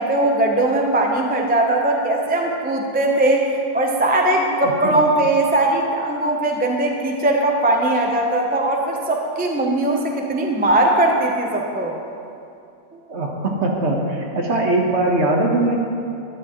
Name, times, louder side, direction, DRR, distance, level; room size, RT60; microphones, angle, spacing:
voice 1, 0.0-12.0, right 1 dB, 10° right, 0 dB, 0.5 m, -19 dB
voice 2, 4.6-5.0 12.9-15.8, right 2 dB, 50° right, 0 dB, 1.4 m, -21 dB
12.5 x 11.0 x 3.1 m, 2.6 s
omnidirectional pair, 1.6 m